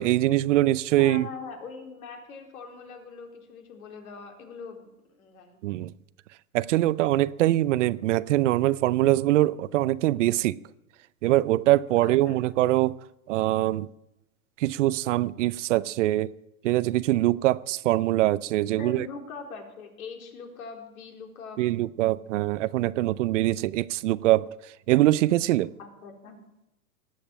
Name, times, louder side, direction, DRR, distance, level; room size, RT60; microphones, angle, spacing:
voice 1, 0.0-1.3 5.6-5.9 6.5-10.6 11.2-13.0 13.3-13.9 14.6-16.3 16.6-19.1 21.6-24.5 24.9-25.7, right 15 dB, 55° right, 0.7 m, -23 dB
voice 2, 1.0-5.6 12.0-12.4 18.8-21.6 25.8-26.4, left 4 dB, 65° left, 4.0 m, -42 dB
19.0 x 7.9 x 8.8 m
hypercardioid pair, 120°, 45 cm